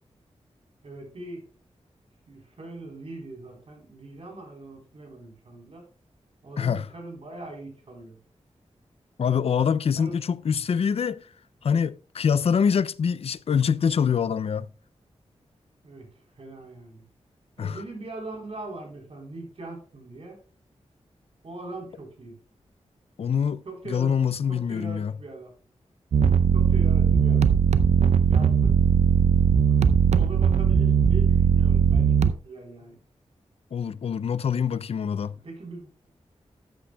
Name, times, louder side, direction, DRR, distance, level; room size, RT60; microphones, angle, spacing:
voice 1, 0.8-1.4 2.3-5.9 6.4-8.2 9.6-9.7 9.9-10.2 15.8-16.1 16.3-17.0 17.6-20.4 21.4-22.4 23.7-24.1 24.5-25.5 26.5-28.7 29.7-33.0 35.1-36.1, right 2 dB, 60° right, 3.7 m, -41 dB
voice 2, 9.2-11.3 11.6-14.7 17.6-17.8 23.2-25.1 33.7-35.3, left 7 dB, 60° left, 0.4 m, -25 dB
sound 1, 26.1-32.3, right 7 dB, 75° right, 0.5 m, -19 dB
13.0 x 8.7 x 2.2 m
wide cardioid pair, 105°, 12 cm